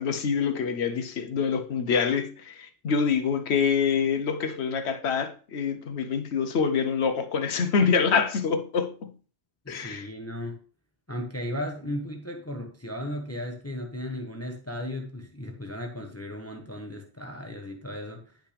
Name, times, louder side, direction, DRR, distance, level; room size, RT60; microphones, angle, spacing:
voice 1, 0.0-9.1 9.7-10.1, left 6 dB, 65° left, 1.1 m, -26 dB
voice 2, 9.6-10.6 11.1-18.3, left 1 dB, 15° left, 1.0 m, -35 dB
10.0 x 5.8 x 3.3 m
omnidirectional pair, 1.3 m